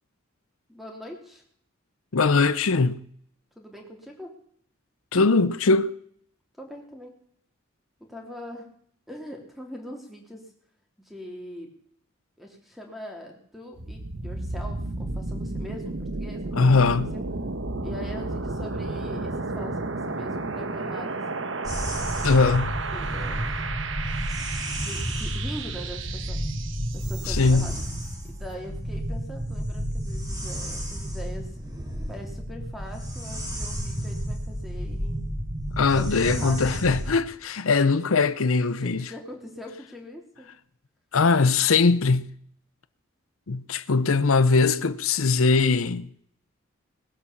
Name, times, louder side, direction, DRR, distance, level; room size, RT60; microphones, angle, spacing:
voice 1, 0.7-1.4 3.6-4.3 6.6-7.1 8.0-8.7 9.1-10.5 11.0-11.7 12.4-16.6 17.1-17.2 17.8-21.2 22.9-23.5 24.8-26.4 26.9-27.7 28.2-31.5 32.1-35.2 35.8-36.6 38.8-40.5, equal, ahead, 3.0 m, -42 dB
voice 2, 2.1-3.1 5.1-5.9 16.5-17.1 22.2-22.8 27.3-27.7 35.7-39.0 41.1-42.3 43.5-46.1, left 4 dB, 80° left, 0.7 m, -21 dB
sound 1, 13.8-27.6, right 3 dB, 60° right, 1.2 m, -33 dB
sound 2, 21.6-37.1, equal, 20° right, 2.8 m, -31 dB
19.5 x 8.5 x 7.2 m
head